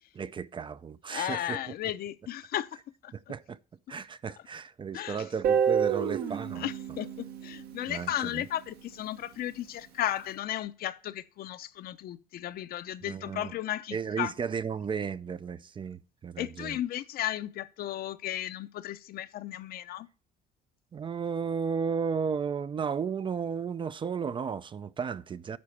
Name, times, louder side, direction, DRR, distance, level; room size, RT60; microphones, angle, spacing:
voice 1, 0.1-1.6 3.1-3.6 3.9-6.7 7.9-8.5 13.0-13.5 13.9-16.8 20.9-25.6, right 6 dB, 30° right, 0.4 m, -34 dB
voice 2, 1.1-2.7 3.0-3.1 4.9-5.2 6.6-14.3 16.4-20.1, left 12 dB, 65° left, 0.7 m, -35 dB
Guitar, 5.4-8.4, right 7 dB, 70° right, 1.3 m, -29 dB
9.5 x 4.3 x 7.1 m
cardioid pair, 110°, 17 cm